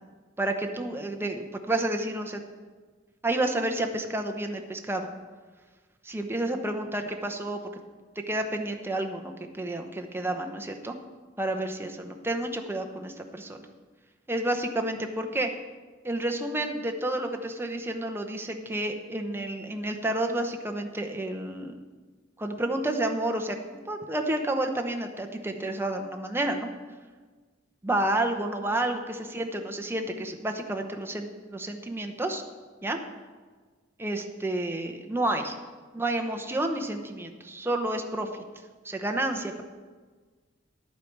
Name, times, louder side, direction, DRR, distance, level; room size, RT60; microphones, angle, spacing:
voice 1, 0.4-2.4 3.2-5.1 6.0-7.6 8.2-11.0 11.4-13.6 14.3-15.5 16.0-21.8 22.4-26.7 27.8-32.4 32.8-33.0 34.0-35.6 35.9-38.4 38.8-39.6, right 1 dB, 10° right, 4 dB, 0.8 m, -30 dB
11.0 x 8.4 x 4.6 m, 1.4 s
head